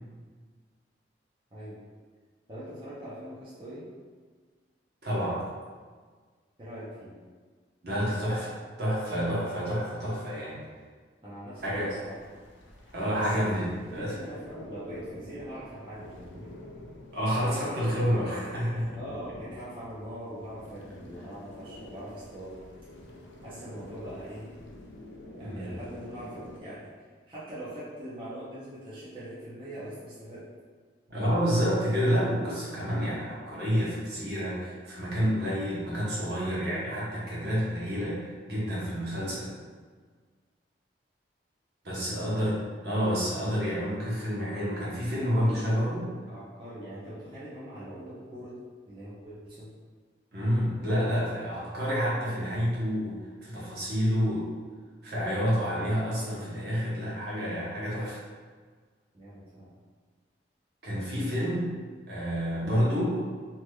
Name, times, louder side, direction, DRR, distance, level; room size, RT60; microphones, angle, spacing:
voice 1, 1.5-1.8 2.5-3.8 6.6-7.1 11.2-12.2 13.1-13.5 13.7-16.5 19.0-22.6 23.4-24.5 25.4-30.4 41.9-42.3 45.4-48.6 48.9-49.7 59.1-59.7, right 1 dB, 30° right, -11 dB, 0.7 m, -42 dB
voice 2, 5.0-5.4 7.8-10.6 11.6-12.0 12.9-14.2 17.1-19.0 25.4-25.7 31.1-39.5 41.8-42.6 42.8-46.1 50.3-54.5 55.0-58.2 60.8-61.7 62.1-63.2, equal, 60° right, -7 dB, 1.0 m, -29 dB
sound 1, 11.6-26.6, left 1 dB, 85° left, 0.5 m, -47 dB
3.2 x 2.8 x 2.3 m, 1.5 s
head